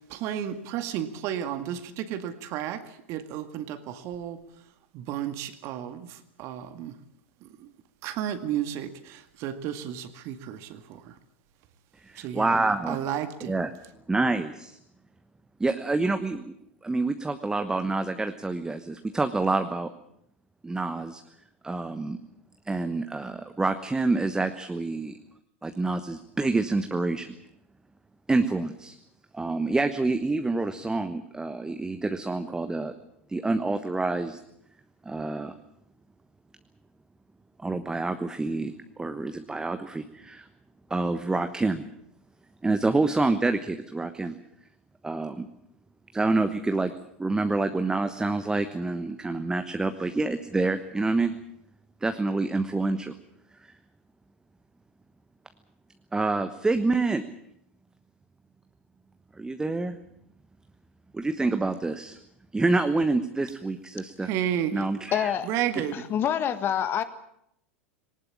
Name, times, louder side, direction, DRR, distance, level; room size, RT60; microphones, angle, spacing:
voice 1, 0.0-4.4 4.9-7.0 7.4-7.7 8.0-11.1 12.2-12.5 12.9-13.5 64.2-64.8 65.4-66.0, right 10 dB, 45° right, 10 dB, 2.1 m, -32 dB
voice 2, 12.0-13.0 13.5-13.7 14.1-14.8 15.6-16.5 16.8-19.9 20.6-21.2 21.6-22.2 22.7-25.2 25.6-27.4 28.3-28.9 29.3-32.9 33.3-34.4 35.0-35.5 37.6-40.5 40.9-41.9 42.6-44.4 45.0-45.5 46.1-46.9 47.2-51.3 52.0-53.1 56.1-57.2 59.4-60.0 61.1-62.2 62.5-64.3 64.7-65.4, right 3 dB, 10° right, 8 dB, 1.2 m, -27 dB
voice 3, 65.1-65.5 65.9-67.0, left 9 dB, 35° left, 12 dB, 1.7 m, -26 dB
20.0 x 19.0 x 8.7 m, 0.73 s
figure-of-eight pair, 85°, 7 cm